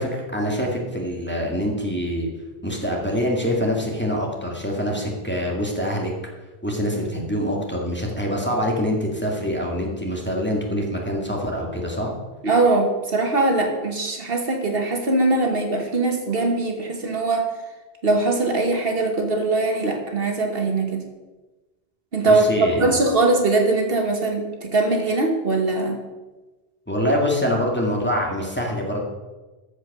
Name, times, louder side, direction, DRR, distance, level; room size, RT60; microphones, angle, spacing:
voice 1, 0.0-2.3 2.6-6.1 6.6-12.1 22.2-22.9 26.9-29.0, equal, 10° left, -1 dB, 1.9 m, -25 dB
voice 2, 12.4-17.5 18.0-21.0 22.1-22.5 22.8-26.0, right 2 dB, 60° right, 3 dB, 1.6 m, -21 dB
13.5 x 5.2 x 6.6 m, 1.2 s
omnidirectional pair, 1.1 m